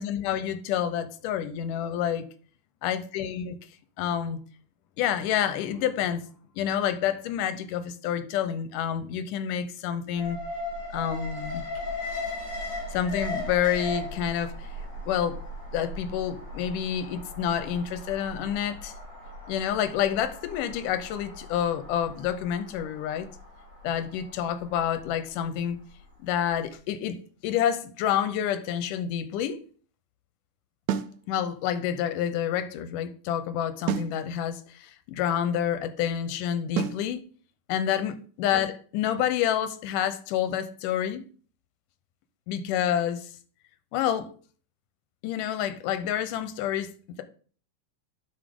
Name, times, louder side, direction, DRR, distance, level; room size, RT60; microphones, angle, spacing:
voice 1, 0.0-2.3 2.8-3.6 4.0-4.4 5.0-6.2 6.6-10.4 10.9-11.6 12.9-14.7 15.1-15.4 15.7-18.9 19.5-23.3 23.8-25.8 26.2-27.2 27.4-29.6 31.3-37.2 37.7-41.3 42.5-43.3 43.9-44.3 45.2-47.2, left 9 dB, 85° left, 2.3 m, -28 dB
Alarm, 10.2-26.3 26.6-26.7, left 1 dB, 35° left, 4.5 m, -38 dB
sound 1, 30.9-31.2 33.9-34.2 36.8-37.1, right 9 dB, 75° right, 2.0 m, -28 dB
9.0 x 6.3 x 3.6 m
omnidirectional pair, 3.7 m